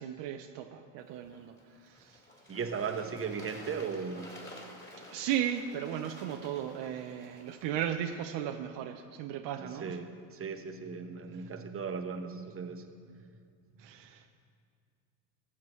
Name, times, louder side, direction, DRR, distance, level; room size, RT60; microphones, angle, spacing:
voice 1, 0.0-1.5 1.8-2.2 5.1-10.0 13.8-14.3, right 10 dB, 60° right, 5 dB, 0.7 m, -36 dB
Bird / Water, 1.0-7.7, left 1 dB, 25° left, 3.0 m, -51 dB
voice 2, 2.5-4.3 9.6-13.3 13.8-13.9, right 6 dB, 25° right, 5 dB, 1.1 m, -37 dB
18.0 x 7.4 x 3.2 m, 2.3 s
hypercardioid pair, 75°, 48 cm